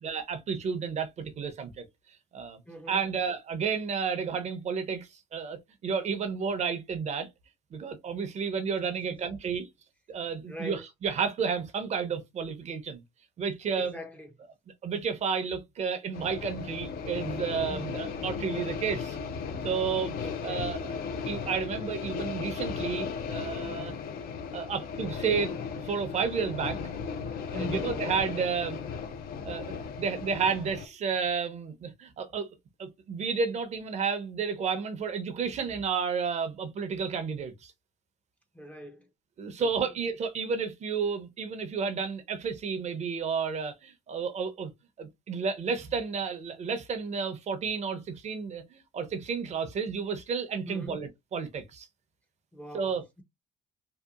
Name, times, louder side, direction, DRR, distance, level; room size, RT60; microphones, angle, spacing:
voice 1, 0.0-1.8 2.3-2.6 2.9-7.3 7.7-9.7 10.1-13.0 13.4-13.9 14.8-19.2 19.6-20.1 20.4-20.9 21.3-23.9 24.5-25.5 25.8-26.8 27.5-28.8 29.4-29.7 30.0-32.5 32.8-37.7 39.4-44.7 45.0-51.9 52.7-53.0, right 6 dB, 40° right, 0.6 m, -31 dB
voice 2, 2.7-3.1 8.9-9.2 10.5-10.9 13.7-14.3 17.7-18.1 20.2-20.7 27.5-28.0 38.5-39.1 39.6-39.9 50.7-51.1 52.5-53.2, left 1 dB, 10° left, 0.5 m, -42 dB
sound 1, 16.1-30.9, left 6 dB, 65° left, 0.5 m, -36 dB
2.8 x 2.2 x 2.3 m
cardioid pair, 110°, 17 cm